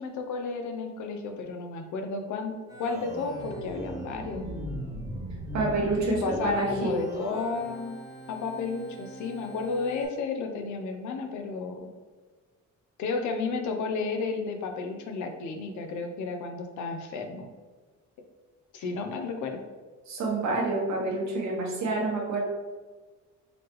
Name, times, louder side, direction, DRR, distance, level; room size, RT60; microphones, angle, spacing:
voice 1, 0.0-2.5 2.8-4.4 6.1-8.0 8.3-11.9 13.0-17.5 18.7-19.5, left 4 dB, 75° left, 4 dB, 0.7 m, -32 dB
Organ, 2.7-10.0, right 1 dB, 10° right, 1.2 m, -38 dB
voice 2, 5.5-7.0 20.1-22.4, right 2 dB, 65° right, -1 dB, 1.2 m, -28 dB
4.0 x 3.2 x 3.0 m, 1.3 s
cardioid pair, 90°, 30 cm